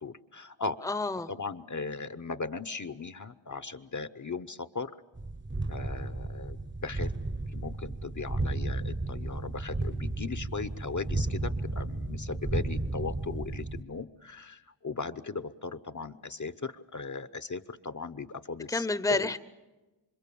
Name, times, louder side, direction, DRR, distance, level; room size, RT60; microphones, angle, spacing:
voice 1, 0.0-0.9 1.3-4.9 5.7-7.1 7.5-19.3, left 4 dB, 40° left, 12 dB, 0.8 m, -38 dB
voice 2, 0.8-1.3 18.7-19.4, left 3 dB, 5° left, 14 dB, 0.8 m, -29 dB
sound 1, 5.2-13.8, right 2 dB, 25° right, 0.8 m, -33 dB
27.5 x 25.0 x 7.0 m, 1.1 s
wide cardioid pair, 75°, 44 cm